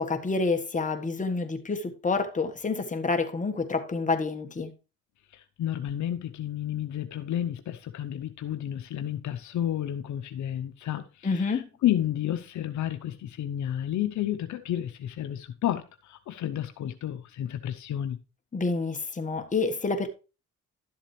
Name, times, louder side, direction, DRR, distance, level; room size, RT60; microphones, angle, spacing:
voice 1, 0.0-4.7 11.2-11.7 18.5-20.1, left 4 dB, 25° left, 1.5 m, -28 dB
voice 2, 5.3-18.2, left 11 dB, 70° left, 0.8 m, -31 dB
12.0 x 7.3 x 3.2 m
cardioid pair, 90°, 30 cm